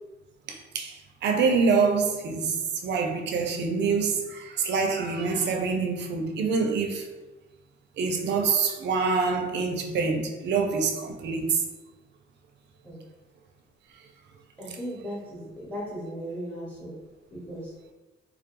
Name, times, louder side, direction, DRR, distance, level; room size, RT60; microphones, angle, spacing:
voice 1, 0.5-7.1 8.0-11.6, right 5 dB, 60° right, 0.4 m, -26 dB
voice 2, 14.6-16.9 17.3-17.7, equal, 5° left, 0.9 m, -37 dB
2.2 x 2.2 x 2.9 m
cardioid pair, 90°, 20 cm